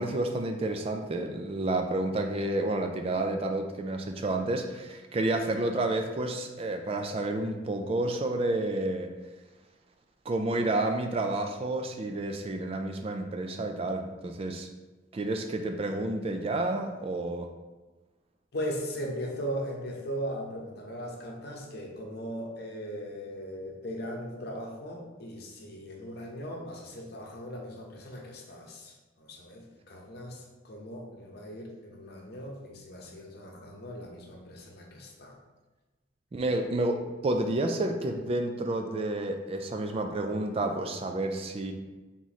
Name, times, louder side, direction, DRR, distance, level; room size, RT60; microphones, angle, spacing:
voice 1, 0.0-9.1 10.3-14.7 15.1-17.5 36.3-41.7, right 2 dB, 30° right, 4 dB, 0.3 m, -30 dB
voice 2, 18.5-35.4, equal, 55° left, 0 dB, 0.8 m, -38 dB
3.7 x 3.0 x 4.0 m, 1.2 s
head